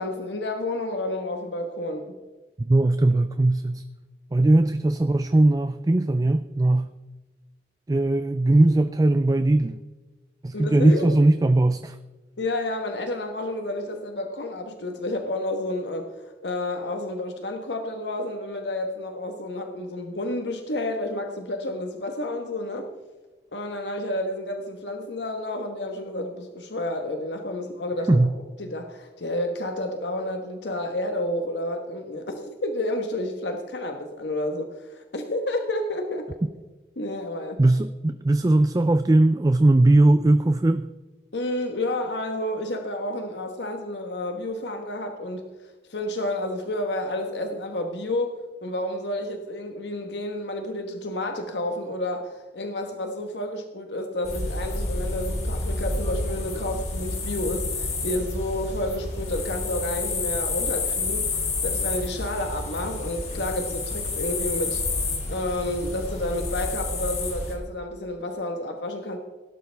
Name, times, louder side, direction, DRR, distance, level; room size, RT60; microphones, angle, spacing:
voice 1, 0.0-2.2 4.4-4.5 10.5-11.1 12.4-22.9 23.5-28.3 28.6-36.3 37.0-37.6 41.3-45.5 45.9-48.3 48.6-64.8 65.3-69.2, left 1 dB, 85° left, 4 dB, 1.3 m, -30 dB
voice 2, 2.6-3.8 4.3-6.9 7.9-9.8 10.4-12.0 28.1-28.3 37.6-40.9, right 2 dB, 20° right, 11 dB, 0.4 m, -19 dB
sound 1, 54.2-67.5, left 3 dB, 40° left, 3.1 m, -29 dB
17.5 x 11.5 x 3.4 m, 1.2 s
head